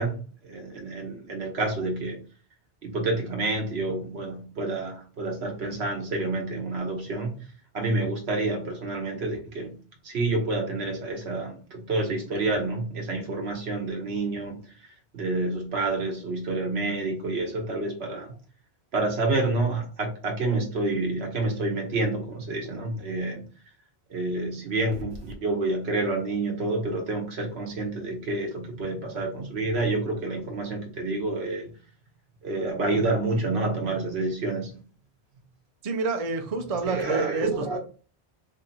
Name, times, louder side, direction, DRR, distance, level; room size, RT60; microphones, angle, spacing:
voice 1, 0.0-2.2 2.8-7.4 7.7-9.7 10.0-14.6 15.1-18.3 18.9-23.4 24.1-31.7 32.4-34.7 36.9-37.8, right 2 dB, 80° right, 1.2 m, -28 dB
voice 2, 35.8-37.8, right 3 dB, 45° right, 0.6 m, -28 dB
2.6 x 2.6 x 4.0 m
omnidirectional pair, 1.1 m